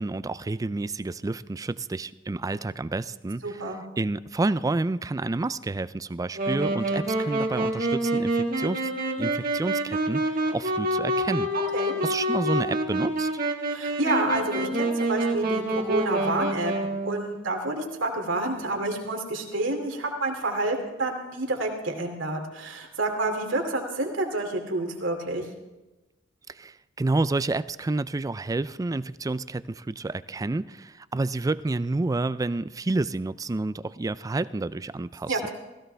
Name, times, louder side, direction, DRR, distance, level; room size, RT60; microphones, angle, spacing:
voice 1, 0.0-3.6 4.0-8.9 9.2-11.5 12.0-13.3 26.5-35.4, right 2 dB, 20° right, 16 dB, 0.3 m, -29 dB
voice 2, 3.4-3.8 11.7-12.0 13.7-16.7 17.0-25.5 35.3-35.5, right 2 dB, 75° right, 3 dB, 2.6 m, -28 dB
Wind instrument woodwind instrument, 6.3-17.3, right 1 dB, 50° right, 1.7 m, -27 dB
16.5 x 15.5 x 3.4 m, 1.1 s
head